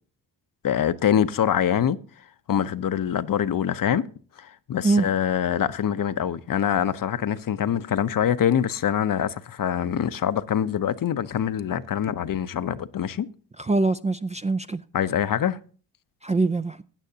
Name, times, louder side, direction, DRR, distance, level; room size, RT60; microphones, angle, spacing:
voice 1, 0.6-2.0 2.5-4.1 4.4-13.3 14.9-15.6, left 9 dB, 45° left, 0.7 m, -24 dB
voice 2, 13.6-14.8 16.2-16.8, right 3 dB, 15° right, 0.4 m, -23 dB
16.0 x 8.9 x 2.8 m
supercardioid pair, 50°, 45 cm